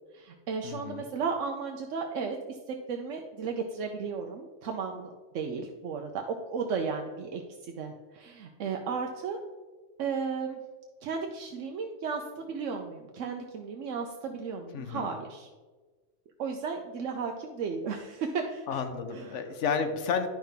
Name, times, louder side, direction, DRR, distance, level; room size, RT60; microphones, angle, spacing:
voice 1, 0.1-9.4 10.0-10.6 11.0-15.5 16.4-18.8 19.1-19.4, right 5 dB, 85° right, 3 dB, 1.0 m, -34 dB
voice 2, 0.6-1.0 14.7-15.1 18.7-20.3, left 6 dB, 75° left, 7 dB, 1.1 m, -31 dB
10.5 x 5.6 x 3.5 m, 1.3 s
omnidirectional pair, 1.3 m